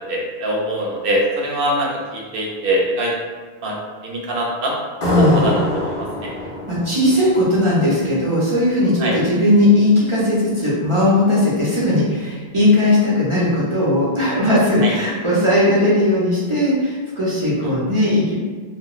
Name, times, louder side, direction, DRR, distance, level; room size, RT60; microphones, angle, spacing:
voice 1, 0.0-3.1 3.6-3.8 4.0-4.7 5.2-5.6 9.0-9.1 14.8-14.9, right 1 dB, 70° right, -2 dB, 0.7 m, -22 dB
sound 1, 5.0-8.3, left 1 dB, 50° left, 0.6 m, -26 dB
voice 2, 5.0-5.5 6.7-18.4, left 1 dB, 40° right, -8 dB, 0.5 m, -17 dB
2.9 x 2.1 x 2.3 m, 1.5 s
omnidirectional pair, 1.0 m